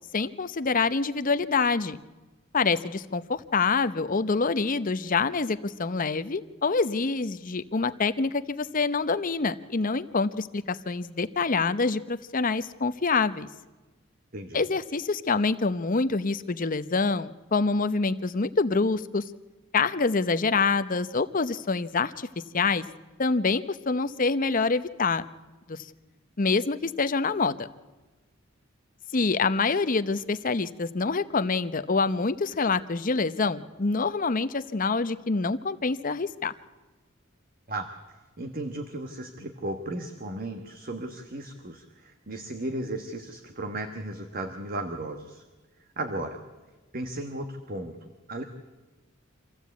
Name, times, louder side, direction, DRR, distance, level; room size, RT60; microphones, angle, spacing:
voice 1, 0.1-2.0 2.5-13.5 14.5-19.2 19.7-22.3 22.5-22.8 23.2-25.3 25.7-25.8 26.4-27.7 29.1-36.5, left 4 dB, 40° left, 12 dB, 0.7 m, -26 dB
voice 2, 38.4-45.4 46.0-46.4 46.9-48.4, right 1 dB, 45° right, 6 dB, 1.3 m, -35 dB
25.5 x 15.0 x 8.3 m, 1.2 s
head